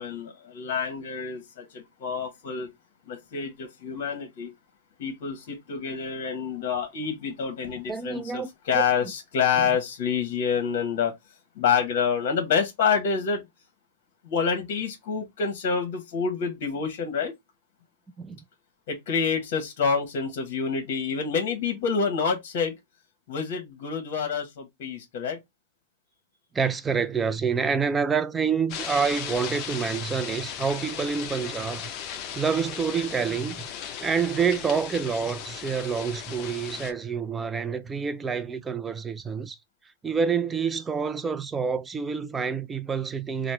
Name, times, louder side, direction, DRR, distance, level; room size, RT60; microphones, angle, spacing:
voice 1, 0.0-2.7 3.1-4.5 5.0-11.2 11.6-13.4 14.2-17.3 18.9-22.7 23.3-25.4, left 6 dB, 55° left, 1.0 m, -27 dB
voice 2, 7.9-8.5 18.2-18.4 26.5-31.9 32.3-33.7 34.0-39.6 40.0-43.5, right 6 dB, 10° right, 0.3 m, -27 dB
sound 1, 28.7-36.9, left 8 dB, 35° left, 0.6 m, -36 dB
4.1 x 2.0 x 3.1 m
hypercardioid pair, 145°, 0 cm